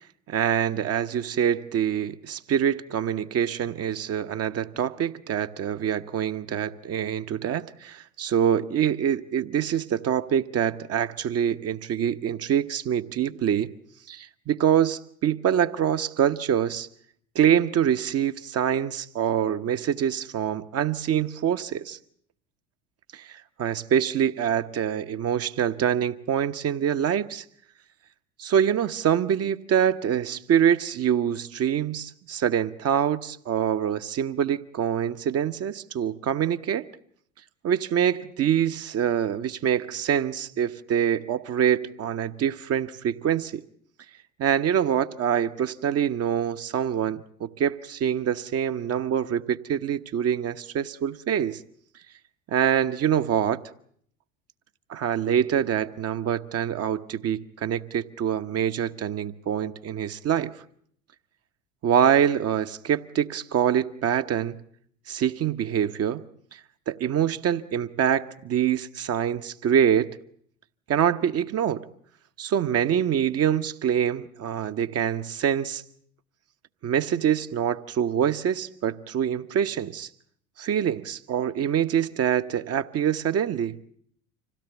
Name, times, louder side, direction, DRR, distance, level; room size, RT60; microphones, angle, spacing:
voice 1, 0.3-13.7 14.1-16.9 17.3-22.0 23.1-27.4 28.4-36.9 37.6-43.6 44.4-51.6 52.5-53.6 54.9-60.5 61.8-64.6 65.1-66.2 66.9-70.1 70.9-71.8 72.4-75.8 76.8-80.1 80.6-83.8, right 9 dB, 40° right, 1.1 m, -25 dB
26.0 x 17.0 x 8.1 m
hypercardioid pair, 70°, 39 cm